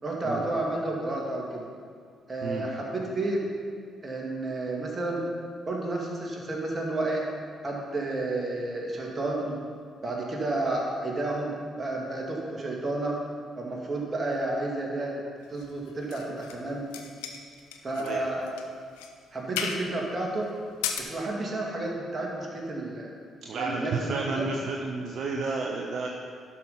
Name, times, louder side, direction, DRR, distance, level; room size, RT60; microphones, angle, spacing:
voice 1, 0.0-1.6 2.3-3.4 4.0-5.2 5.7-7.2 7.6-9.6 10.0-13.2 13.6-15.2 15.5-16.9 17.8-18.5 19.3-20.5 21.0-23.1 23.5-24.5, right 2 dB, 35° right, -2 dB, 2.4 m, -31 dB
sound 1, 15.6-16.6 16.9-18.1 18.5-18.6 19.0-19.1 19.6-19.9 20.6-21.0, left 8 dB, 75° left, 0.7 m, -34 dB
voice 2, 23.4-26.1, right 3 dB, 60° right, 0 dB, 0.7 m, -31 dB
12.0 x 5.7 x 5.8 m, 2.1 s
hypercardioid pair, 45°, 0 cm